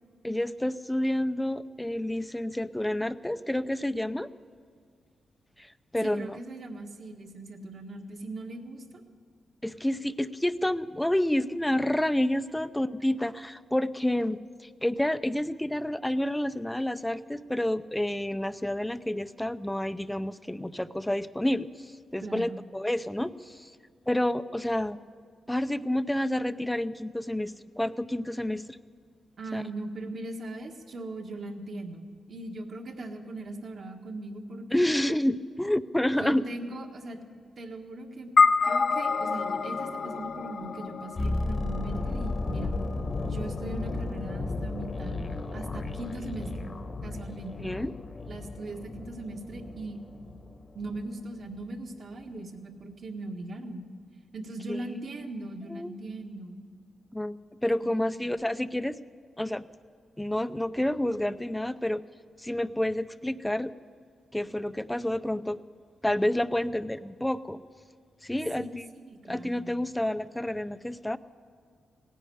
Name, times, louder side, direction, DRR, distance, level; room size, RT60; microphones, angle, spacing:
voice 1, 0.2-4.3 5.6-6.4 9.6-14.4 14.8-23.7 24.1-25.0 25.5-28.8 29.5-29.6 34.7-36.4 47.6-47.9 54.7-54.8 55.7-55.9 57.1-58.9 59.4-59.7 60.2-62.0 62.4-63.7 64.3-65.6 66.0-67.6 68.2-68.8 69.3-71.2, left 1 dB, 10° left, 13 dB, 0.5 m, -29 dB
voice 2, 6.0-9.0 22.2-22.6 29.4-34.9 36.1-37.2 37.6-38.3 38.6-42.7 43.2-45.2 45.5-46.7 47.0-47.7 48.3-50.0 50.7-53.8 54.3-56.6 57.8-58.3 68.6-69.7, right 2 dB, 55° right, 4 dB, 1.6 m, -39 dB
sound 1, 38.4-42.9, left 5 dB, 55° left, 0.8 m, -27 dB
sound 2, 41.2-51.2 51.4-51.6, left 2 dB, 40° left, 1.1 m, -34 dB
17.5 x 10.0 x 7.9 m, 2.1 s
cardioid pair, 90°, 0 cm